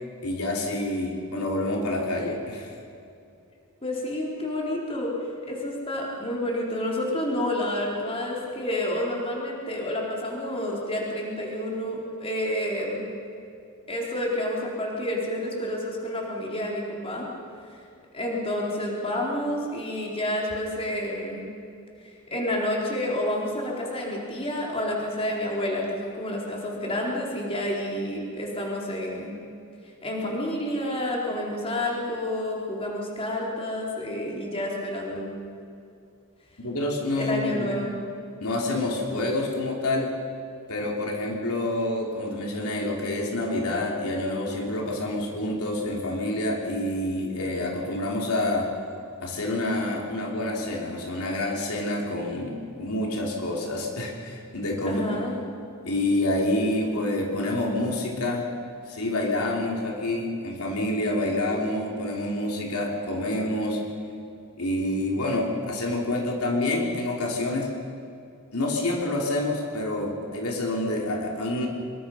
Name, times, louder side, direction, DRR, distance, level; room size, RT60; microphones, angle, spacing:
voice 1, 0.2-2.8 36.6-37.7 38.4-40.2 40.7-48.7 49.2-55.0 55.8-58.5 58.9-63.8 64.6-67.7 68.5-71.7, left 1 dB, 80° left, -1 dB, 3.5 m, -27 dB
voice 2, 3.8-5.2 5.5-13.0 13.9-17.3 18.1-21.5 22.3-29.3 30.0-35.3 37.2-38.0 54.8-55.4, left 1 dB, 25° left, -3 dB, 4.1 m, -29 dB
25.0 x 23.0 x 5.7 m, 2.5 s
head